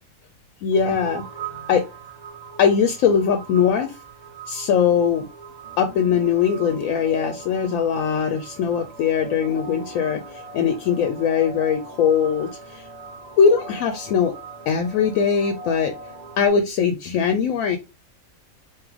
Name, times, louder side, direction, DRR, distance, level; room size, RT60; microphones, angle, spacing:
voice 1, 0.6-1.3 1.7-1.8 2.6-4.0 4.5-5.3 5.8-12.8 13.4-14.3 14.7-15.9 16.4-17.8, left 7 dB, 75° left, 7 dB, 0.9 m, -21 dB
sound 1, 0.7-16.5, right 4 dB, 35° right, 0.7 m, -40 dB
3.6 x 3.0 x 3.3 m, 0.26 s
omnidirectional pair, 1.5 m